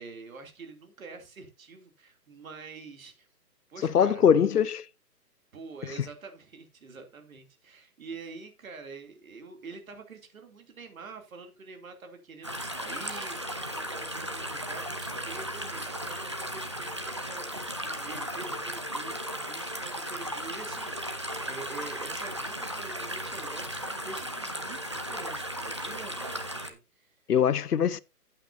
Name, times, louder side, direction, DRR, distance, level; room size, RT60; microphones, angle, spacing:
voice 1, 0.0-3.3 3.7-4.2 5.5-27.1, right 4 dB, 55° right, 2.9 m, -46 dB
voice 2, 3.8-4.8 27.3-28.0, left 8 dB, 70° left, 0.7 m, -22 dB
sound 1, 12.4-26.7, equal, 20° right, 0.5 m, -36 dB
14.0 x 8.8 x 2.7 m
figure-of-eight pair, 150°, 49 cm